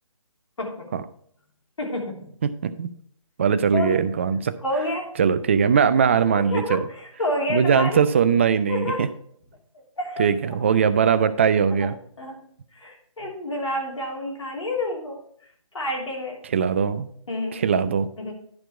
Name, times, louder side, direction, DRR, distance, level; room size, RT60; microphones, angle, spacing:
voice 1, 0.6-0.9 1.8-2.3 3.7-4.0 4.6-5.1 6.3-8.0 8.7-9.1 9.7-10.3 10.6-10.8 11.8-11.9 12.2-12.5 12.7-16.5 17.3-17.6 18.2-18.3, left 1 dB, 65° left, 0 dB, 3.2 m, -29 dB
voice 2, 2.4-2.9 3.4-4.5 5.2-6.8 7.5-9.1 10.2-12.0 16.5-17.1 17.5-18.1, right 7 dB, 25° right, 13 dB, 0.4 m, -20 dB
11.5 x 4.6 x 4.9 m, 0.65 s
figure-of-eight pair, 150°, 17 cm